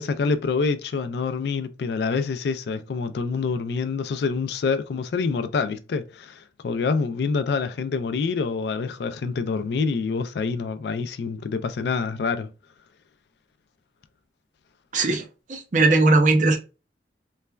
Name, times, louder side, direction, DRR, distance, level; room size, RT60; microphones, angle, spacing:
voice 1, 0.0-12.5, left 4 dB, 65° left, 0.3 m, -26 dB
voice 2, 14.9-16.6, right 3 dB, 45° right, 0.5 m, -19 dB
3.1 x 2.2 x 2.2 m
head